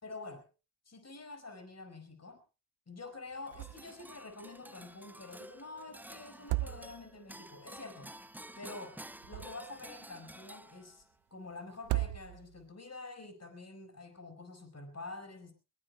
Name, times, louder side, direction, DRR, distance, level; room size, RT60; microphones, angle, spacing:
voice 1, 0.0-0.5 0.9-2.4 2.9-8.1 8.5-9.0 9.3-11.0 11.3-15.5, left 3 dB, 30° left, 9 dB, 5.0 m, -47 dB
sound 1, 3.5-11.1, right 1 dB, 5° right, 0.7 m, -51 dB
sound 2, 3.5-4.0 4.3-4.4 6.3-7.3 9.0-9.9 11.7-12.7, right 20 dB, 65° right, 0.7 m, -36 dB
22.0 x 21.5 x 2.3 m, 0.32 s
hypercardioid pair, 45°, 49 cm